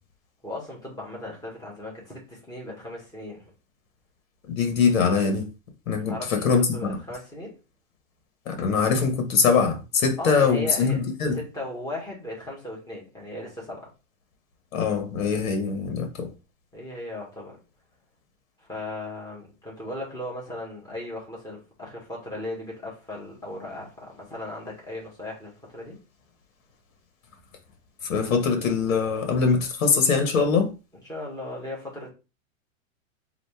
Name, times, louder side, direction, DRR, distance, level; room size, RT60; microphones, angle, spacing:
voice 1, 0.4-3.4 6.1-7.5 10.2-11.0 11.3-13.9 16.7-17.6 18.6-26.0 31.0-32.1, left 1 dB, 10° left, 1.7 m, -37 dB
voice 2, 4.5-5.5 5.9-7.0 8.5-11.4 14.7-16.3 28.0-30.7, left 5 dB, 75° left, 1.6 m, -23 dB
4.1 x 2.8 x 3.5 m
hypercardioid pair, 145°, 40 cm